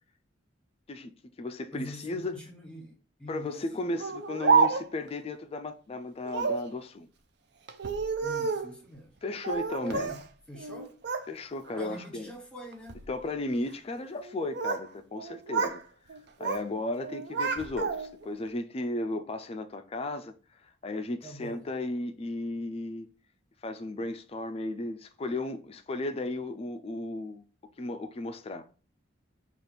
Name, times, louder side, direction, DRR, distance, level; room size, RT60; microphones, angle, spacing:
voice 1, 0.9-2.4 3.3-7.1 9.2-10.1 11.3-12.3 13.1-15.8 16.4-20.3 20.6-23.1 23.6-27.4 27.8-28.7, left 2 dB, 30° left, 0.3 m, -35 dB
voice 2, 1.7-3.6 8.2-9.1 9.8-10.2 10.5-10.9 11.8-13.1 21.2-21.7, equal, 5° left, 1.1 m, -44 dB
Speech, 4.0-5.1 6.3-6.7 7.7-8.7 9.4-10.2 10.5-11.3 11.7-12.1 12.7-13.0 14.2-14.9 15.2-15.8 16.1-16.7 17.0-18.2, right 5 dB, 60° right, 0.5 m, -29 dB
5.0 x 2.4 x 4.3 m
head